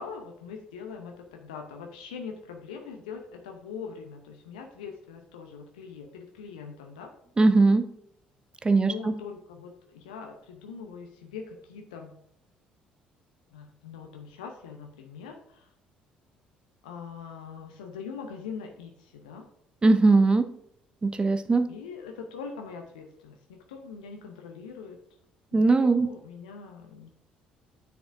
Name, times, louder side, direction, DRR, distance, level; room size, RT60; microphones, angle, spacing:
voice 1, 0.0-7.1 8.7-12.2 13.5-15.7 16.8-19.5 21.7-25.0 25.5-27.1, left 5 dB, 75° left, 0.8 m, -42 dB
voice 2, 7.4-7.9 8.6-9.2 19.8-20.5 21.0-21.7 25.5-26.1, right 3 dB, 20° right, 0.6 m, -20 dB
9.3 x 7.1 x 2.6 m
figure-of-eight pair, 50°, 4 cm